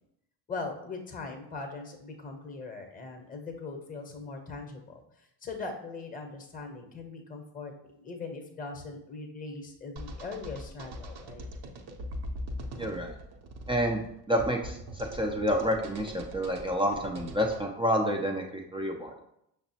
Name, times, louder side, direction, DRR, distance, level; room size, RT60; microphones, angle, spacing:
voice 1, 0.5-11.5, left 3 dB, 15° left, 4 dB, 0.8 m, -40 dB
sound 1, 10.0-17.6, equal, 55° right, 0.7 m, -41 dB
voice 2, 12.8-13.2 13.7-19.1, equal, 10° right, 0 dB, 0.4 m, -29 dB
5.7 x 2.0 x 2.8 m, 0.77 s
hypercardioid pair, 65°, 49 cm